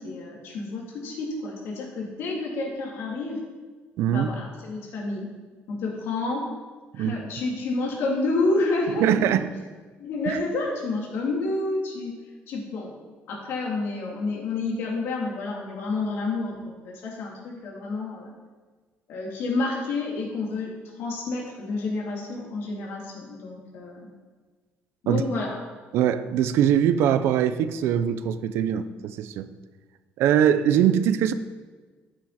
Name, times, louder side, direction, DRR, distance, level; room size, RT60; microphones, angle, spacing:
voice 1, 0.0-3.4 4.1-5.3 5.7-6.5 6.9-9.1 10.0-12.2 12.5-12.9 13.3-18.3 19.1-24.1 25.0-25.5, left 3 dB, 70° left, -2 dB, 3.4 m, -29 dB
voice 2, 4.0-4.3 6.9-7.2 9.0-9.5 10.3-10.4 25.1-25.2 25.9-29.5 30.2-31.3, right 9 dB, 75° right, 12 dB, 0.7 m, -22 dB
13.0 x 9.2 x 4.3 m, 1.4 s
cardioid pair, 150°, 4 cm